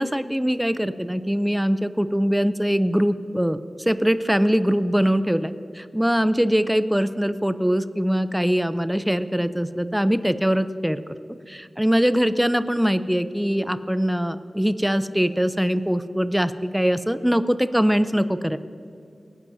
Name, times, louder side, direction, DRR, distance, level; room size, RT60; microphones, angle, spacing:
voice 1, 0.0-11.0 11.5-18.6, equal, 5° right, 12 dB, 0.5 m, -22 dB
26.0 x 10.5 x 2.7 m, 2.5 s
wide cardioid pair, 110°, 0 cm